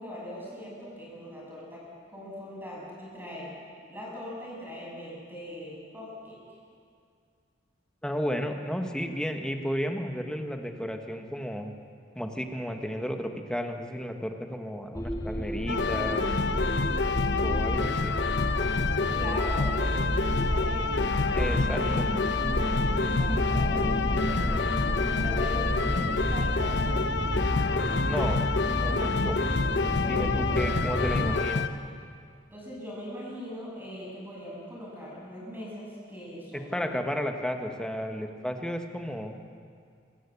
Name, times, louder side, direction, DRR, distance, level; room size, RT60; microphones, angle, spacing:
voice 1, 0.0-1.8 2.1-3.5 3.9-6.4 18.9-22.0 23.1-24.6 25.1-27.0 29.9-31.0 32.5-37.0, equal, 10° right, -5 dB, 7.2 m, -40 dB
voice 2, 8.0-11.7 12.1-16.3 17.4-18.2 21.3-22.0 28.0-28.5 28.7-29.6 30.0-31.7 36.7-39.3, equal, 5° left, 4 dB, 1.3 m, -33 dB
sound 1, 14.9-31.4, equal, 20° left, 1.7 m, -31 dB
sound 2, 15.7-31.7, left 4 dB, 65° left, 0.9 m, -28 dB
24.5 x 14.0 x 8.4 m, 2.3 s
head